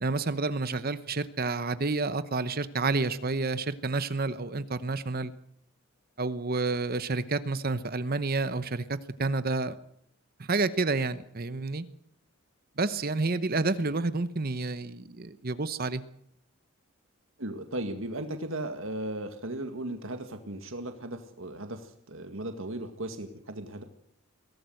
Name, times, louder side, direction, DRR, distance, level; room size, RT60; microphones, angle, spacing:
voice 1, 0.0-5.3 6.2-9.7 10.5-11.9 12.8-16.0, right 3 dB, 45° right, 13 dB, 0.9 m, -29 dB
voice 2, 17.4-23.8, right 1 dB, 65° right, 6 dB, 1.9 m, -36 dB
23.0 x 17.5 x 7.9 m, 0.69 s
head